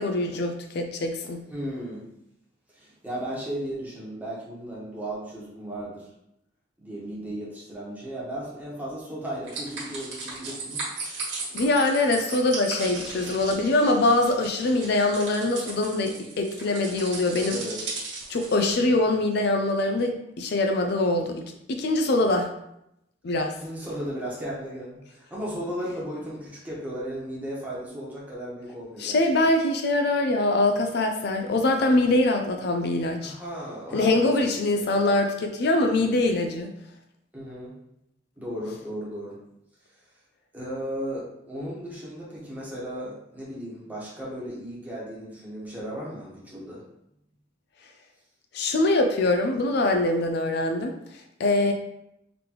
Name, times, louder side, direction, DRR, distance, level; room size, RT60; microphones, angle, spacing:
voice 1, 0.0-1.4 11.5-17.6 18.3-21.4 21.7-22.5 23.2-23.5 29.0-33.3 33.9-36.7 48.5-50.9 51.4-51.7, left 2 dB, 60° left, 4 dB, 0.4 m, -23 dB
voice 2, 1.5-2.0 2.7-6.1 6.8-10.8 17.4-17.9 23.5-29.2 33.2-34.9 37.3-37.7 38.4-39.4 40.5-46.8, equal, 10° right, -6 dB, 1.2 m, -35 dB
sound 1, 9.5-18.7, right 3 dB, 70° right, 1.5 m, -37 dB
3.9 x 3.3 x 3.0 m, 0.81 s
head